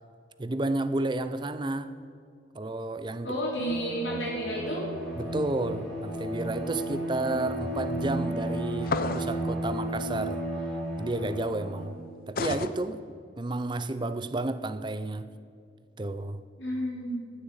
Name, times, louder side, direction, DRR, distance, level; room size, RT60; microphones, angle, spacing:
voice 1, 0.4-1.9 2.5-3.3 5.2-10.4 11.0-12.0 12.3-13.0 13.4-15.3 16.0-16.4, right 2 dB, 25° right, 12 dB, 0.5 m, -31 dB
voice 2, 3.2-4.8 16.6-17.3, equal, 70° left, -5 dB, 3.4 m, -31 dB
Bowed string instrument, 3.5-12.0, right 1 dB, 5° left, 3.4 m, -34 dB
sound 1, 8.8-9.4 12.4-12.7, left 4 dB, 50° left, 0.6 m, -30 dB
14.5 x 7.3 x 8.8 m, 2.2 s
head